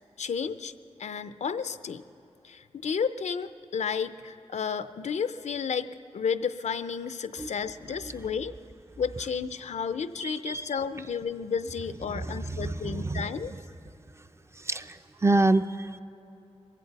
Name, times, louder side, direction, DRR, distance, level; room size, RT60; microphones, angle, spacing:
voice 1, 0.2-0.7 1.0-2.0 2.4-8.5 9.0-13.5, left 6 dB, 85° left, 12 dB, 0.5 m, -32 dB
voice 2, 10.2-10.6 12.1-13.6 14.6-16.0, right 2 dB, 25° right, 10 dB, 0.4 m, -28 dB
22.0 x 16.0 x 4.1 m, 2.9 s
wide cardioid pair, 110°, 12 cm